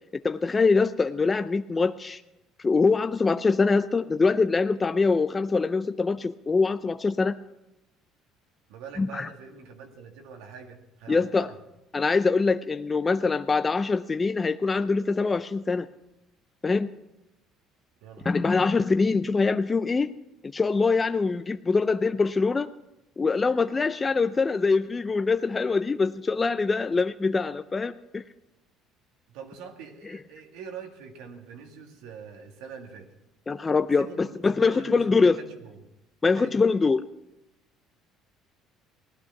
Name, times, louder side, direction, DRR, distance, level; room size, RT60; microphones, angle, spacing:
voice 1, 0.2-2.2 2.6-7.3 9.0-9.3 11.1-11.5 11.9-15.9 16.6-16.9 18.3-20.1 20.5-22.7 23.2-28.2 30.1-30.2 33.5-35.4 36.2-37.0, left 4 dB, 20° left, 10 dB, 0.5 m, -24 dB
voice 2, 8.7-11.6 18.0-18.8 29.3-33.1 34.0-35.8 36.4-36.6, right 6 dB, 85° right, 3 dB, 2.2 m, -44 dB
17.0 x 12.0 x 5.9 m, 0.94 s
cardioid pair, 115°, 0 cm